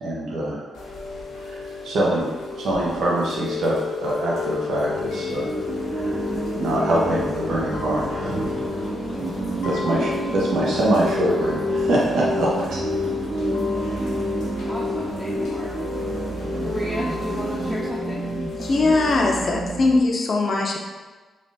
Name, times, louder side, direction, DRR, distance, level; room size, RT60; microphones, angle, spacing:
voice 1, 0.0-0.6 1.4-2.3 2.6-5.4 5.9-6.2 6.5-8.6 9.6-12.8, right 1 dB, 75° right, -4 dB, 0.8 m, -24 dB
Chime / Rain, 0.7-19.1, left 5 dB, 85° left, 0.9 m, -31 dB
sound 1, 4.7-17.8, equal, 55° right, 1.5 m, -37 dB
sound 2, 5.2-20.0, right 3 dB, 35° right, 0.3 m, -31 dB
voice 2, 14.7-15.9 16.6-18.3, equal, 5° left, -5 dB, 0.6 m, -33 dB
voice 3, 18.6-20.8, left 3 dB, 55° left, 0 dB, 0.6 m, -20 dB
3.4 x 2.5 x 3.9 m, 1.3 s
supercardioid pair, 60°, 0 cm